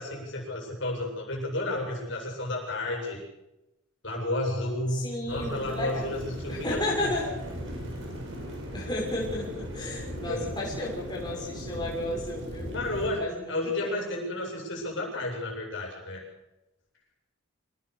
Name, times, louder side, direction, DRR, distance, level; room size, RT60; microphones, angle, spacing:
voice 1, 0.0-3.2 4.0-7.1 10.2-10.5 12.7-16.2, left 1 dB, 60° left, 0 dB, 7.7 m, -32 dB
voice 2, 4.9-6.0 6.5-7.3 8.7-12.7 13.2-14.2, left 1 dB, 20° left, -4 dB, 6.3 m, -33 dB
sound 1, 5.3-13.2, equal, 65° right, 7.2 m, -38 dB
26.0 x 18.5 x 6.8 m, 0.95 s
head